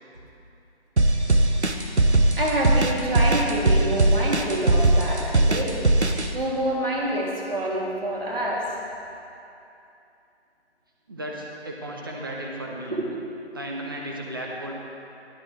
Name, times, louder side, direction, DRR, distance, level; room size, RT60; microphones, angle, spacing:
sound 1, 1.0-6.3, right 2 dB, 75° right, 1.2 m, -19 dB
voice 1, 2.4-5.9 6.3-8.6 12.9-13.1, right 1 dB, 55° right, -4 dB, 3.5 m, -27 dB
voice 2, 11.1-13.0 13.5-14.7, right 1 dB, 20° right, -1 dB, 1.1 m, -34 dB
19.5 x 12.5 x 3.5 m, 2.7 s
figure-of-eight pair, 155°, 34 cm